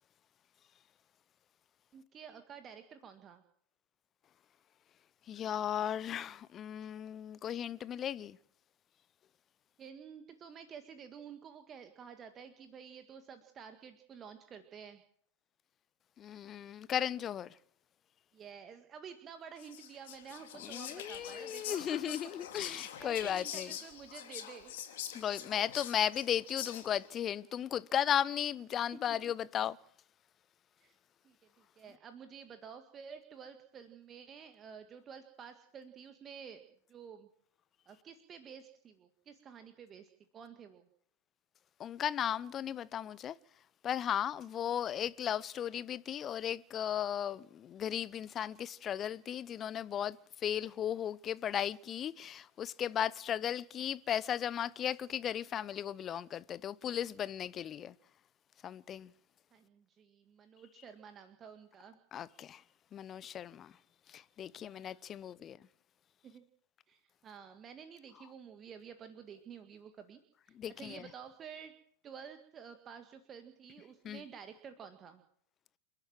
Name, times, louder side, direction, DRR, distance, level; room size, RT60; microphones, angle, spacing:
voice 1, 1.9-3.4 9.8-15.0 18.3-21.8 22.7-24.7 28.9-29.0 30.8-30.9 31.2-37.3 37.9-40.9 44.6-44.7 59.5-62.0 64.6-65.0 66.2-66.4 66.9-70.2 70.5-71.7 72.0-75.2, right 7 dB, 25° right, 1.8 m, -51 dB
voice 2, 5.3-8.4 16.2-17.5 20.6-23.7 25.1-29.8 41.8-43.3 43.8-50.2 50.4-57.9 58.6-59.1 62.1-62.6 62.9-63.7 64.1-65.6 70.6-71.0 74.0-74.2, left 9 dB, 25° left, 0.8 m, -36 dB
Whispering, 19.6-27.1, left 10 dB, 55° left, 2.9 m, -45 dB
29.0 x 11.5 x 7.7 m
figure-of-eight pair, 90°, 0 cm